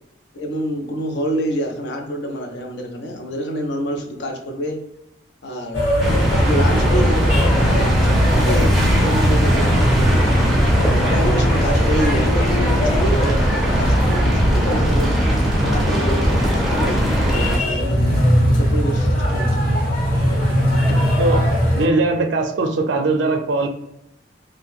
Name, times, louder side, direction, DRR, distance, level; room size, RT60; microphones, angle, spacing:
voice 1, 0.3-4.8 5.4-5.9 6.2-10.6 11.0-15.1 15.6-19.7, equal, 60° left, 3 dB, 0.6 m, -27 dB
sound 1, 5.7-21.9, equal, 35° left, 1.2 m, -21 dB
sound 2, 6.0-17.6, equal, ahead, 0.5 m, -18 dB
voice 2, 21.2-21.5 21.8-23.7, right 3 dB, 75° right, 5 dB, 0.4 m, -20 dB
2.6 x 2.2 x 3.4 m, 0.83 s
head